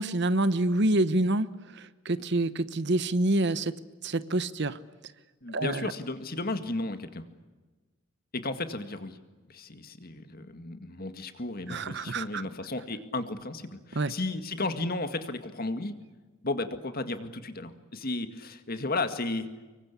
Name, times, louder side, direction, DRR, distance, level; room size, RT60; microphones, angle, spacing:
voice 1, 0.0-1.5 1.7-3.7 4.0-4.8 5.5-5.8 11.7-12.4 14.0-14.1, right 2 dB, 55° right, 14 dB, 1.0 m, -27 dB
voice 2, 5.4-7.3 8.3-9.2 9.5-15.9 16.4-19.5, left 2 dB, 45° left, 9 dB, 2.0 m, -34 dB
25.0 x 23.5 x 8.5 m, 1.3 s
head